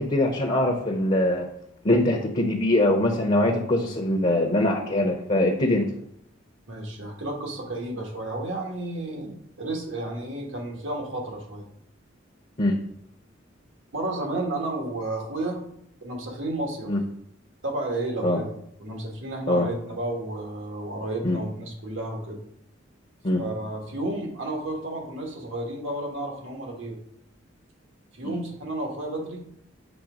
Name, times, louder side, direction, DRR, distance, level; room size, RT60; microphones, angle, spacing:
voice 1, 0.0-1.5 1.8-5.9 12.6-12.8 16.9-17.0 18.2-18.4 19.5-19.7 21.2-21.4 23.2-23.4 28.2-28.4, left 1 dB, 35° left, 2 dB, 0.8 m, -22 dB
voice 2, 6.7-11.6 13.9-15.6 16.0-16.9 17.6-18.5 18.8-22.4 23.4-26.9 28.1-29.4, right 2 dB, 75° right, 1 dB, 1.6 m, -32 dB
7.1 x 3.4 x 5.0 m, 0.71 s
head